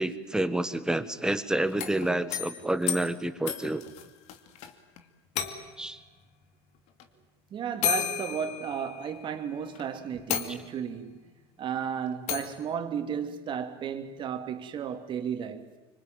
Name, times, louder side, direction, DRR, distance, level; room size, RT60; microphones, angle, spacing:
voice 1, 0.0-3.8 5.8-6.0 10.5-10.6, right 1 dB, 5° right, 1.7 m, -29 dB
sound 1, 1.7-4.7 5.0-5.1 5.3-5.9 7.0-7.1 7.8-9.2 9.7-9.8 10.3-11.0 12.3-12.6, left 9 dB, 55° left, 2.7 m, -33 dB
voice 2, 7.5-11.2 11.6-15.7, right 8 dB, 35° right, 3.0 m, -34 dB
25.5 x 25.5 x 9.2 m
supercardioid pair, 105°, 13 cm